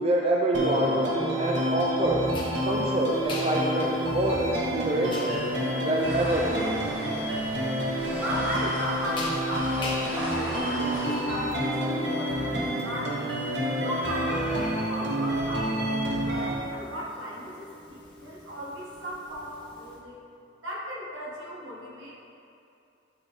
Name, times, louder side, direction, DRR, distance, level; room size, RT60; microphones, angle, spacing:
voice 1, 0.0-2.2 2.6-5.4 5.8-6.8, right 1 dB, 30° right, -2 dB, 0.4 m, -26 dB
sound 1, 0.5-16.5, equal, 65° right, 0.9 m, -29 dB
sound 2, 2.3-20.0, left 1 dB, 25° left, 0.9 m, -41 dB
sound 3, 6.0-11.2, equal, 10° right, 1.0 m, -38 dB
voice 2, 8.2-13.3 13.8-20.2 20.6-22.1, equal, 85° right, -6 dB, 1.5 m, -36 dB
8.6 x 4.0 x 3.4 m, 2.7 s
head